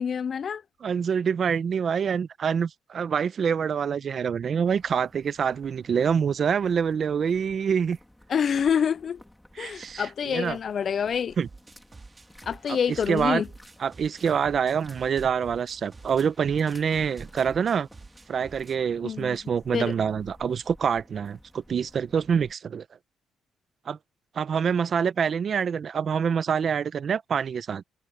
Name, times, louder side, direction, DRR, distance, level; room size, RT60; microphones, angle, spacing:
voice 1, 0.0-0.6 8.3-9.2 9.6-11.4 12.5-13.5 19.0-19.4 19.7-19.9, left 7 dB, 50° left, 0.5 m, -27 dB
voice 2, 0.8-8.0 9.6-10.6 11.4-11.5 12.7-13.4 13.8-17.9 18.3-22.8 23.9-24.0 24.3-27.8, right 7 dB, 50° right, 1.0 m, -26 dB
sound 1, 4.6-22.5, left 1 dB, 5° left, 3.7 m, -54 dB
sound 2, 11.3-18.8, right 3 dB, 25° right, 2.9 m, -48 dB
cardioid pair, 90°, 0 cm